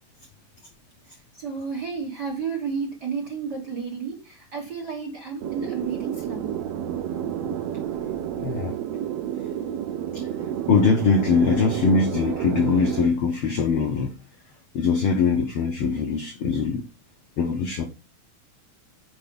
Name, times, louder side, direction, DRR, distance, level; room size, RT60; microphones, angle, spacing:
voice 1, 1.3-6.5, right 5 dB, 55° right, 2 dB, 1.1 m, -32 dB
sound 1, 5.4-13.1, right 9 dB, 90° right, 1.4 m, -30 dB
voice 2, 8.4-8.7 10.1-10.3 10.7-14.1 14.7-16.8 17.4-17.8, left 5 dB, 85° left, 5 dB, 1.2 m, -22 dB
6.3 x 4.8 x 5.2 m, 0.32 s
omnidirectional pair, 3.6 m